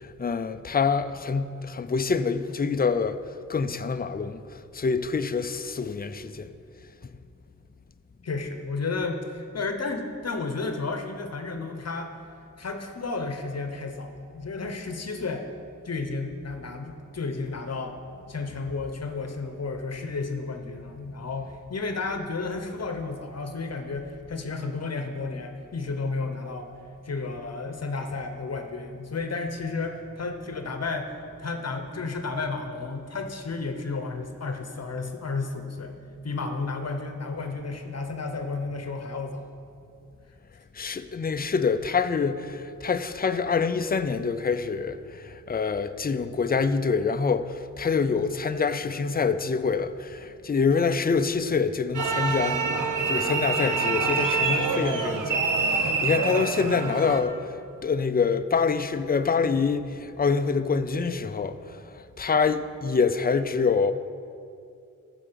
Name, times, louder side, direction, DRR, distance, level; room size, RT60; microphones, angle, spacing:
voice 1, 0.0-3.2 3.5-4.4 4.7-6.5 40.7-63.9, left 5 dB, 30° left, 0.5 m, -26 dB
voice 2, 8.2-12.1 12.6-15.5 15.8-18.0 18.3-26.7 27.0-35.9 36.2-39.5, left 3 dB, 50° left, 1.0 m, -32 dB
sound 1, 51.9-57.2, right 4 dB, 70° right, 1.0 m, -26 dB
14.5 x 5.0 x 6.8 m
wide cardioid pair, 80°, 32 cm